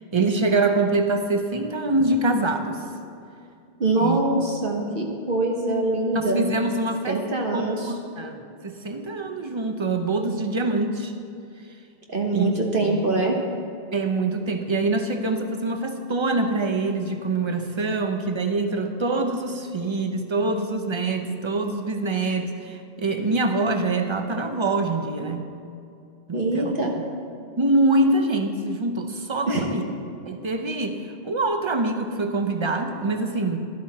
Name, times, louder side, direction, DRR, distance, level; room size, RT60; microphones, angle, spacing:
voice 1, 0.0-2.8 4.0-4.2 6.1-7.2 7.5-11.1 12.3-13.1 13.9-25.4 26.3-26.7 27.6-29.8 30.3-33.6, right 2 dB, 30° right, 6 dB, 0.7 m, -25 dB
voice 2, 3.8-6.5 7.1-7.9 12.1-13.4 26.3-26.9 29.5-29.7, right 2 dB, 50° right, 0 dB, 1.2 m, -24 dB
12.0 x 11.5 x 4.2 m, 2.5 s
omnidirectional pair, 1.2 m